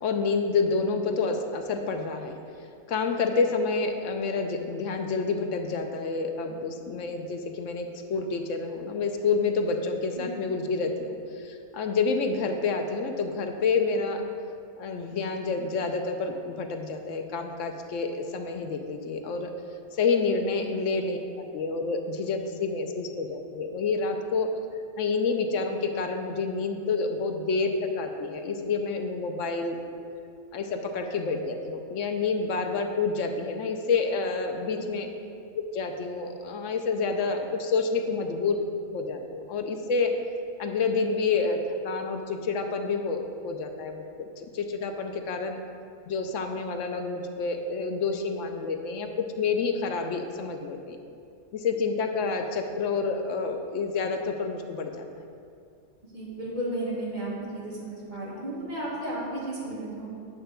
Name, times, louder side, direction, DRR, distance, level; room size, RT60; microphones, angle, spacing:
voice 1, 0.0-2.4 2.9-14.2 14.8-19.5 19.9-24.5 25.0-29.8 30.5-35.1 35.7-38.6 38.9-40.1 40.6-44.0 44.4-45.6 46.1-49.1 49.4-51.0 51.5-55.1 58.3-58.5, left 4 dB, 65° left, 5 dB, 0.9 m, -28 dB
voice 2, 56.1-57.8 58.1-60.2, right 1 dB, 30° right, -6 dB, 1.8 m, -33 dB
8.8 x 3.4 x 6.6 m, 2.4 s
omnidirectional pair, 1.5 m